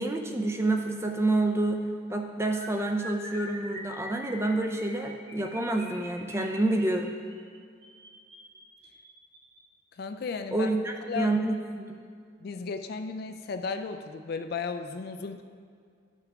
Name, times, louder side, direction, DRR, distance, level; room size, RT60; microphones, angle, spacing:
voice 1, 0.0-1.8 2.1-7.2 10.5-12.0, right 2 dB, 15° right, 3 dB, 0.4 m, -28 dB
sound 1, 2.4-9.6 10.3-10.6 10.9-11.1 11.4-11.6, equal, 80° right, 1.8 m, -45 dB
voice 2, 10.0-10.8 11.1-11.3 12.4-15.4, left 5 dB, 50° left, 7 dB, 0.3 m, -34 dB
11.0 x 5.8 x 3.5 m, 2.2 s
head